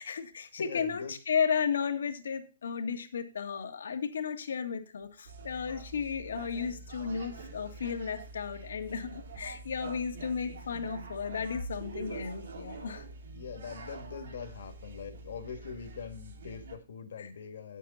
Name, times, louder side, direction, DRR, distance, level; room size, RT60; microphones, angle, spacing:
voice 1, 0.0-13.0 17.2-17.3, left 6 dB, 80° left, 6 dB, 1.8 m, -34 dB
voice 2, 0.6-1.1 13.3-17.8, left 6 dB, 65° left, 8 dB, 1.9 m, -42 dB
sound 1, 5.2-16.8, right 3 dB, 70° right, 2.9 m, -46 dB
8.8 x 8.3 x 4.2 m, 0.33 s
hypercardioid pair, 170°, 0 cm